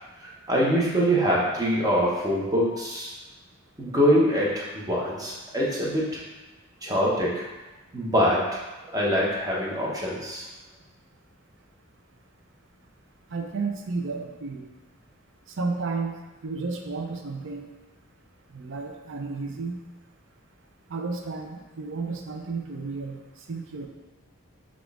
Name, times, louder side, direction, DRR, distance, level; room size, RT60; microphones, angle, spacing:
voice 1, 0.2-3.1 3.8-6.2 6.8-7.5 7.9-8.6 8.9-10.5, equal, 20° right, -4 dB, 0.9 m, -24 dB
voice 2, 13.3-14.7 15.5-17.7 18.5-19.7 20.9-23.2 23.5-23.9, right 4 dB, 65° right, 3 dB, 0.5 m, -32 dB
6.0 x 2.4 x 3.5 m, 1.1 s
head